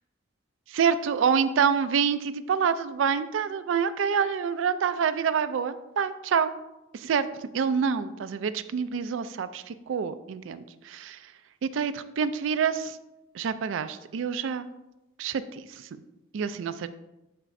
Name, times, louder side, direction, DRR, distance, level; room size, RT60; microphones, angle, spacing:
voice 1, 0.7-6.5 6.9-7.3 7.5-11.2 11.6-13.0 13.3-14.7 15.2-15.9 16.3-16.9, right 6 dB, 75° right, 12 dB, 0.3 m, -27 dB
11.0 x 4.2 x 2.6 m, 0.97 s
head